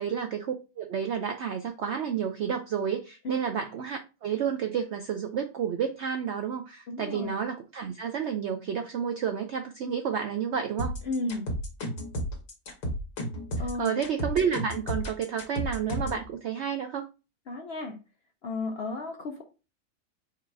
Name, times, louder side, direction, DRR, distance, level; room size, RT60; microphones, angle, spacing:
voice 1, 0.0-10.9 13.8-17.1, right 7 dB, 75° right, 6 dB, 0.6 m, -30 dB
voice 2, 6.9-7.3 11.0-11.5 13.6-14.0 17.5-18.0 18.4-19.4, left 2 dB, 65° left, 3 dB, 0.6 m, -33 dB
sound 1, 10.8-16.2, equal, 85° left, 2.0 m, -32 dB
4.7 x 2.4 x 4.5 m, 0.30 s
omnidirectional pair, 1.7 m